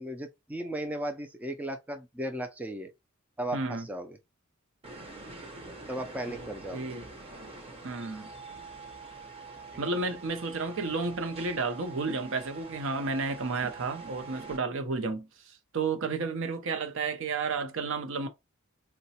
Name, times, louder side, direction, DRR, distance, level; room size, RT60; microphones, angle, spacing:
voice 1, 0.0-2.9 3.4-4.2 5.9-6.8 9.7-9.9, right 1 dB, 5° right, 0.3 m, -36 dB
voice 2, 3.5-3.9 6.3-7.1 7.8-8.3 9.8-18.3, right 4 dB, 65° right, 0.6 m, -32 dB
sound 1, 4.8-14.6, right 3 dB, 30° right, 0.7 m, -45 dB
3.9 x 2.2 x 2.7 m
head